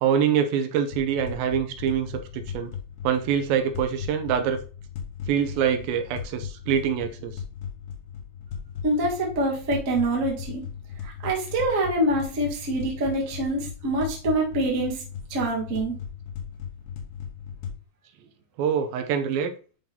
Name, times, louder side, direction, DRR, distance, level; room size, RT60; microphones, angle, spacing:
voice 1, 0.0-2.8 3.0-4.6 5.3-7.4 18.6-19.5, right 8 dB, 80° right, 2.4 m, -25 dB
sound 1, 0.9-17.7, left 7 dB, 80° left, 2.9 m, -38 dB
voice 2, 8.8-10.6 11.0-15.0 15.3-16.0, right 1 dB, 45° right, 1.0 m, -25 dB
10.5 x 3.8 x 2.8 m
omnidirectional pair, 4.2 m